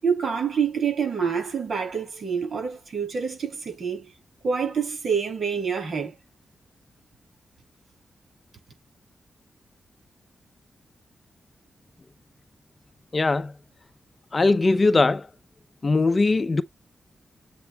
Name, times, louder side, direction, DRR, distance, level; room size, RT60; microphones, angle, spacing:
voice 1, 0.0-4.1 4.4-6.1, right 6 dB, 55° right, 5.8 m, -27 dB
voice 2, 13.1-13.5 14.3-15.3 15.8-16.6, left 3 dB, 30° left, 0.6 m, -20 dB
8.0 x 4.7 x 2.9 m
wide cardioid pair, 130°, 0 cm